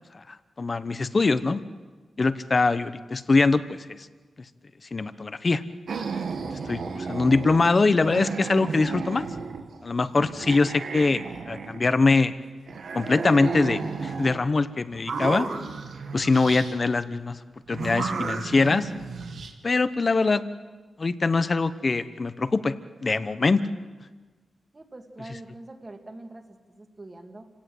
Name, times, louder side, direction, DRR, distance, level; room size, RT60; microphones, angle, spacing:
voice 1, 0.1-1.6 2.2-4.0 4.9-5.6 6.7-9.3 9.8-12.3 12.9-15.5 16.1-17.4 17.7-18.9 19.6-20.4 21.0-22.7 23.0-23.6, left 3 dB, 30° left, 13 dB, 1.0 m, -23 dB
sound 1, 5.9-7.8 8.0-9.8 10.1-12.1 12.7-14.4 14.9-16.7 17.7-19.5, right 4 dB, 70° right, 2.1 m, -33 dB
voice 2, 24.7-27.4, right 2 dB, 25° right, 5 dB, 2.2 m, -44 dB
29.0 x 17.5 x 7.8 m, 1.4 s
wide cardioid pair, 145°, 0 cm